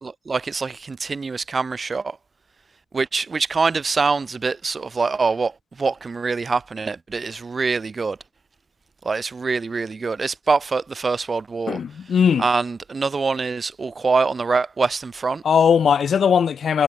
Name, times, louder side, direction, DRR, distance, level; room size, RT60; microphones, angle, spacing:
voice 1, 0.0-2.2 2.9-8.2 9.0-11.8 12.1-12.2 12.4-15.4, right 4 dB, 35° right, 2.4 m, -24 dB
voice 2, 11.7-12.4 15.4-16.8, left 7 dB, 65° left, 0.9 m, -18 dB
wide cardioid pair, 150°, 0 cm